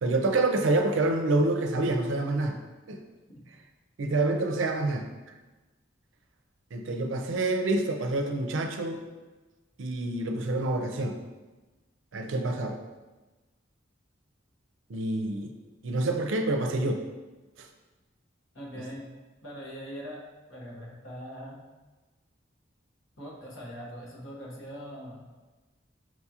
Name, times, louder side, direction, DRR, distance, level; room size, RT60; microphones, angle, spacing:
voice 1, 0.0-2.6 2.9-3.0 4.0-5.1 6.7-9.0 9.8-11.2 12.1-12.8 14.9-15.6 15.8-17.0 17.6-17.7 18.7-18.9, right 2 dB, 75° right, 5 dB, 0.4 m, -27 dB
voice 2, 18.5-19.1 19.4-21.6 23.2-25.2, equal, 80° left, -4 dB, 1.1 m, -42 dB
6.0 x 2.4 x 2.8 m, 1.2 s
head